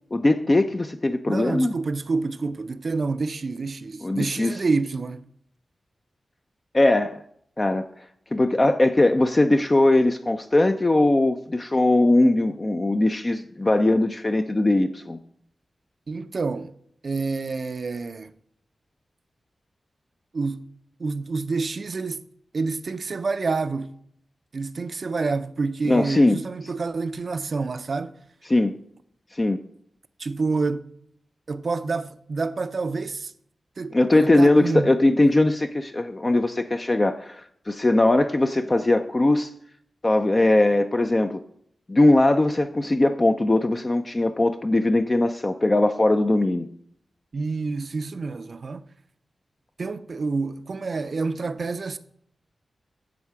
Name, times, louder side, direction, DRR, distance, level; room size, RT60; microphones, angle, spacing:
voice 1, 0.1-1.7 4.0-4.5 6.7-7.2 7.6-7.9 8.3-15.2 25.9-26.4 28.5-28.7 29.3-29.6 33.9-39.5 40.0-41.4 41.9-46.7, left 2 dB, 35° left, 0.5 m, -20 dB
voice 2, 1.3-5.3 16.1-16.7 17.0-18.3 20.3-20.6 21.0-22.2 22.5-23.9 24.5-28.2 30.2-30.9 31.5-33.3 33.8-34.9 47.3-48.8 49.8-52.0, right 4 dB, 60° right, 0.5 m, -28 dB
10.5 x 3.7 x 4.7 m
cardioid pair, 40°, 0 cm